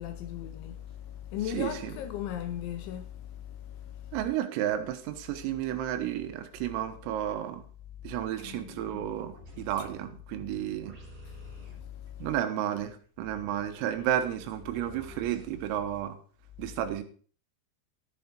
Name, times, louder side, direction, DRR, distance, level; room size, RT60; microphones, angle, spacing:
voice 1, 0.0-4.2 11.6-12.3, left 10 dB, 80° left, 2.9 m, -38 dB
voice 2, 1.5-1.9 4.1-7.6 8.0-11.0 12.2-16.2 16.6-17.0, right 11 dB, 85° right, 3.8 m, -32 dB
sound 1, 8.4-15.8, right 1 dB, 40° right, 3.8 m, -52 dB
13.5 x 8.5 x 4.4 m
omnidirectional pair, 6.0 m